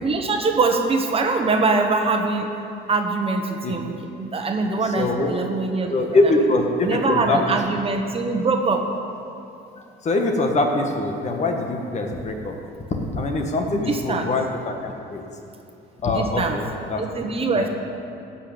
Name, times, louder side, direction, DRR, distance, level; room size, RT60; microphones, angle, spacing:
voice 1, 0.0-2.5 2.9-6.1 6.8-8.9 13.7-14.3 16.1-16.6 17.0-17.7, right 3 dB, 30° right, 3 dB, 1.3 m, -23 dB
voice 2, 3.6-4.0 4.8-5.3 5.9-7.6 9.8-12.6 13.1-15.2 16.0-17.0 17.5-17.7, left 2 dB, 40° left, 3 dB, 1.6 m, -23 dB
15.0 x 5.8 x 8.6 m, 2.7 s
cardioid pair, 105°, 18 cm